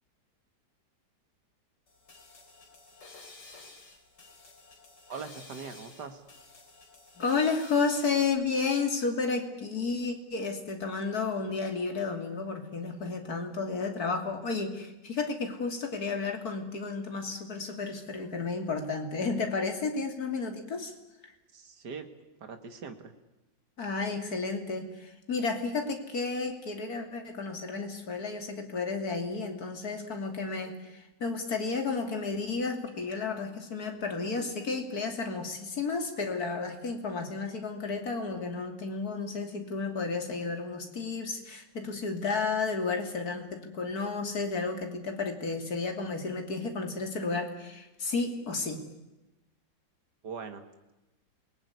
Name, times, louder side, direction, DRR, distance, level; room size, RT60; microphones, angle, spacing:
sound 1, 1.9-8.3, left 3 dB, 75° left, 4.7 m, -52 dB
voice 1, 5.1-6.2 21.5-22.1 22.4-23.1 50.2-50.6, right 5 dB, 70° right, 7 dB, 2.5 m, -41 dB
voice 2, 7.2-20.9 23.8-48.8, left 4 dB, 55° left, 5 dB, 3.3 m, -32 dB
27.5 x 19.5 x 9.7 m, 1.0 s
omnidirectional pair, 1.9 m